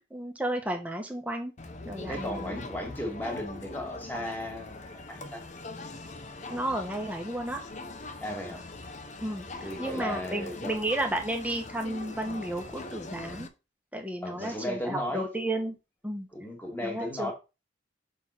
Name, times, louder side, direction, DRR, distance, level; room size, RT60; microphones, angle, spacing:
voice 1, 0.0-1.5 1.8-2.6 6.5-7.6 9.2-13.5 13.9-15.8 16.0-16.3 16.8-17.3, right 1 dB, 10° right, 1.3 m, -33 dB
Crowd, 1.6-13.5, left 3 dB, 40° left, 0.8 m, -42 dB
voice 2, 2.0-5.4 8.2-8.6 9.6-10.7 14.2-15.3 16.3-17.3, left 1 dB, 10° left, 2.1 m, -35 dB
6.2 x 3.9 x 5.9 m
head